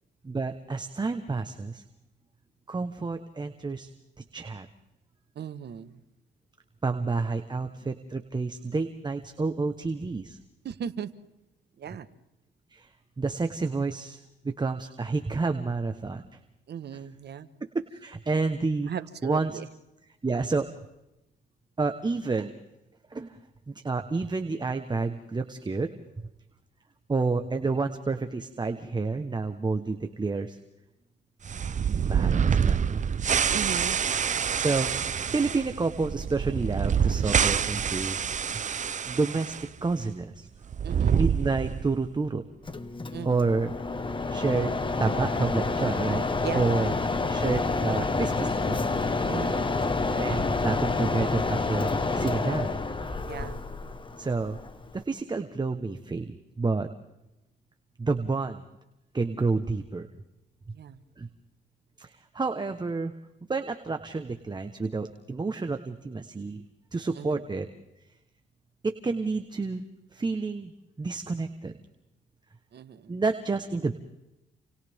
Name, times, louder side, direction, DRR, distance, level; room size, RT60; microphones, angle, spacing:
voice 1, 0.2-1.8 2.7-3.9 4.3-4.7 6.8-10.4 12.7-12.9 13.2-14.2 14.4-16.2 17.7-18.9 19.2-19.6 20.2-20.7 21.8-22.5 23.1-23.4 23.7-25.9 27.1-30.6 32.0-33.0 34.6-34.9 35.3-38.2 39.1-40.5 41.1-42.4 43.2-43.7 44.3-46.2 46.5-46.9 47.3-48.8 50.2-52.7 54.2-54.6 54.9-56.9 58.0-58.6 59.1-60.1 61.2-61.3 62.0-63.1 63.5-66.6 66.9-67.7 68.8-69.8 70.1-70.7 71.0-71.7 73.1-73.9, right 3 dB, 20° right, 1.2 m, -29 dB
voice 2, 5.3-6.0 10.6-11.1 11.8-12.1 16.7-17.5 18.9-19.7 33.5-34.0 40.8-41.2 43.1-43.4 46.4-46.9 49.3-49.8 53.2-53.6 60.7-61.0 67.1-67.4 72.7-73.1, right 8 dB, 55° right, 1.5 m, -37 dB
sound 1, 31.4-39.6 39.9-40.0 40.6-42.0, right 7 dB, 40° right, 0.7 m, -26 dB
Mechanisms, 42.6-55.0, left 3 dB, 25° left, 1.5 m, -28 dB
29.0 x 28.5 x 3.7 m
cardioid pair, 90°, 20 cm